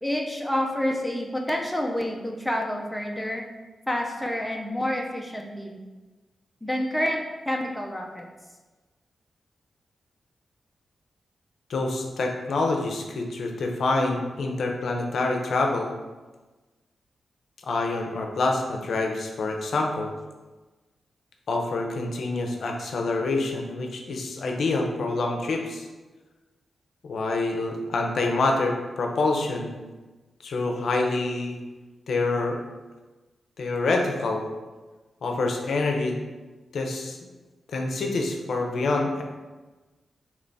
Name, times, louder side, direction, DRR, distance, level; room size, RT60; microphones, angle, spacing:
voice 1, 0.0-3.4 3.9-5.8 6.6-8.3, left 1 dB, 5° left, 1 dB, 0.4 m, -28 dB
voice 2, 11.7-15.9 17.6-20.1 21.5-25.9 27.0-29.7 30.4-31.6 32.1-32.6 33.6-34.5 35.2-36.2 36.7-37.2 37.7-39.2, left 3 dB, 65° left, 2 dB, 0.5 m, -26 dB
3.3 x 3.0 x 4.0 m, 1.2 s
wide cardioid pair, 170°, 0 cm